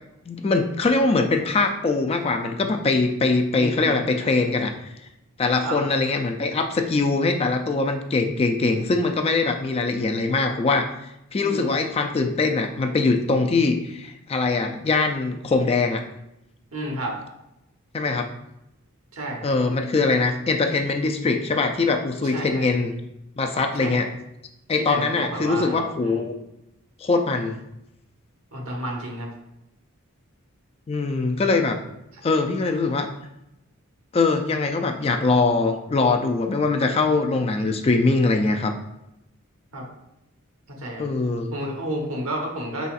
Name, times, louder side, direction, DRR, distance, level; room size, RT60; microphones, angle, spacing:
voice 1, 0.3-4.7 5.4-10.9 11.3-16.0 17.9-18.3 19.4-22.9 23.4-24.1 24.7-26.3 27.0-27.6 30.9-31.8 32.2-33.1 34.1-38.7 41.0-41.5, left 3 dB, 25° left, 5 dB, 0.3 m, -22 dB
voice 2, 3.5-4.0 5.6-5.8 11.4-11.8 16.7-17.2 19.1-19.5 22.2-22.7 23.7-24.0 24.8-26.2 28.5-29.3 39.7-39.9 40.7-41.0 41.5-42.9, right 1 dB, 75° right, 0 dB, 1.1 m, -31 dB
5.4 x 4.0 x 2.4 m, 0.88 s
head